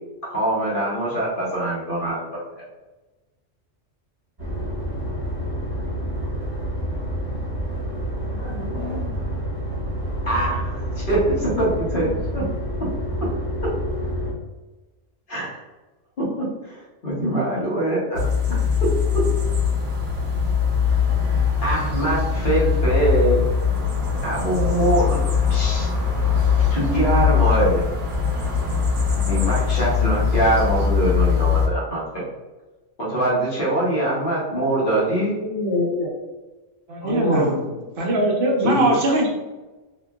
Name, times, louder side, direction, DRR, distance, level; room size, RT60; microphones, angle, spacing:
voice 1, 0.2-2.4 10.2-12.4 15.3-15.5 16.2-18.2 18.5-18.7 21.6-23.4 24.2-25.2 25.5-25.9 26.7-27.8 29.1-32.2 33.0-35.3 38.6-38.9, right 1 dB, 50° left, -6 dB, 1.0 m, -23 dB
sound 1, 4.4-14.3, equal, 20° right, 0.9 m, -28 dB
voice 2, 8.3-9.1 34.8-34.9 35.4-36.1 37.0-37.8, left 2 dB, 85° left, -6 dB, 1.2 m, -26 dB
sound 2, 18.1-31.7, left 6 dB, 80° right, 1.0 m, -21 dB
voice 3, 36.9-37.5 38.0-39.3, right 1 dB, 55° right, -1 dB, 0.7 m, -20 dB
2.9 x 2.4 x 2.3 m, 1.1 s
omnidirectional pair, 1.3 m